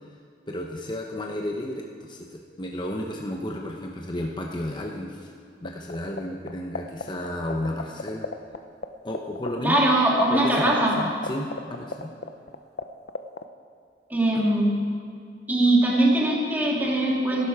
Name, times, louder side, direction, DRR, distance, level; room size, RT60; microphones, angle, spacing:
voice 1, 0.5-5.3 5.6-8.3 9.0-9.9 10.3-12.1, left 1 dB, 25° left, 0 dB, 1.0 m, -32 dB
sound 1, 5.6-6.2 6.5-8.6 8.8-8.9 9.1-12.8 13.1-13.4, left 4 dB, 60° left, 0.7 m, -30 dB
voice 2, 9.6-10.9 14.1-14.7 15.5-17.5, right 1 dB, 10° right, -4 dB, 2.6 m, -21 dB
18.0 x 11.5 x 5.0 m, 2.3 s
head